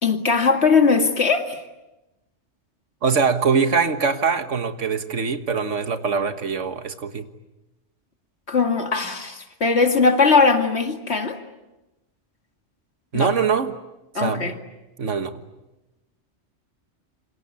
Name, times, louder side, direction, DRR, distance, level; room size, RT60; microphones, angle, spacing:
voice 1, 0.0-1.6 8.5-11.4 13.1-13.3 14.1-14.5, left 4 dB, 65° left, 5 dB, 2.5 m, -19 dB
voice 2, 3.0-7.3 13.1-13.8 14.2-14.6 15.0-15.4, right 5 dB, 85° right, 9 dB, 1.8 m, -23 dB
28.0 x 25.0 x 8.4 m, 1.0 s
omnidirectional pair, 1.2 m